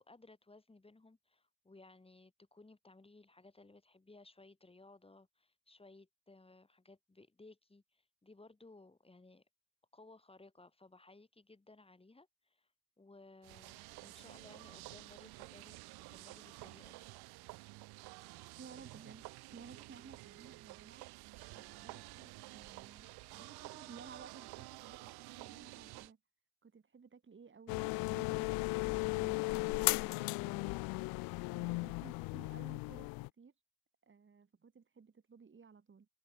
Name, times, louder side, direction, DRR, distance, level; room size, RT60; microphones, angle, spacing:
voice 1, 0.0-9.4 9.9-12.7 13.0-15.8 16.1-17.1, left 2 dB, 15° left, 2.6 m, -60 dB
sound 1, 13.4-26.1, right 22 dB, 60° right, 1.6 m, -51 dB
voice 2, 18.6-21.0 21.5-25.1 25.4-26.2 26.6-30.7 31.5-33.5 34.1-36.1, right 5 dB, 25° right, 3.1 m, -56 dB
sound 2, 27.7-33.3, left 27 dB, 55° left, 0.6 m, -36 dB
figure-of-eight pair, 55°, 42 cm